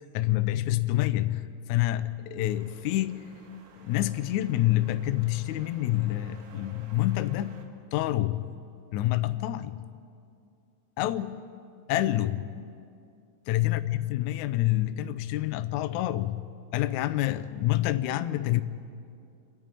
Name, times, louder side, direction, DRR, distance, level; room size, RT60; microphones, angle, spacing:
voice 1, 0.1-3.3 3.8-7.6 7.9-8.5 8.9-9.9 11.0-11.5 11.9-12.5 13.5-16.5 16.7-18.6, left 15 dB, 90° left, 11 dB, 1.6 m, -27 dB
sound 1, 2.4-7.7, right 4 dB, 80° right, 3.5 m, -54 dB
28.5 x 11.0 x 9.1 m, 2.4 s
omnidirectional pair, 4.2 m